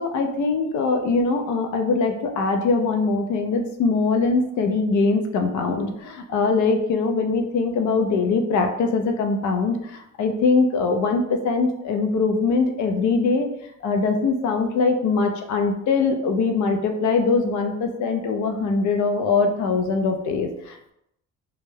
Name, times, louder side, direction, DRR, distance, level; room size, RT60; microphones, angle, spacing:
voice 1, 0.0-13.5 13.8-20.9, left 4 dB, 70° left, 5 dB, 0.5 m, -22 dB
2.3 x 2.1 x 3.1 m, 0.80 s
cardioid pair, 90°, 30 cm